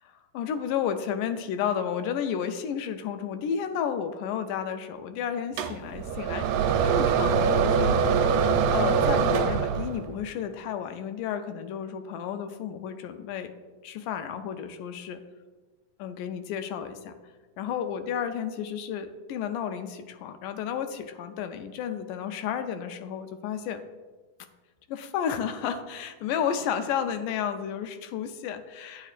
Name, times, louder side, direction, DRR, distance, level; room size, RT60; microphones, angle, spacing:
voice 1, 0.0-8.5 8.7-13.5 13.8-15.2 16.0-17.2 17.6-23.8 24.9-29.1, left 8 dB, 85° left, 9 dB, 2.1 m, -32 dB
sound 1, 5.6-10.1, right 6 dB, 80° right, 1.9 m, -23 dB
9.2 x 8.7 x 2.5 m, 1.3 s
omnidirectional pair, 3.6 m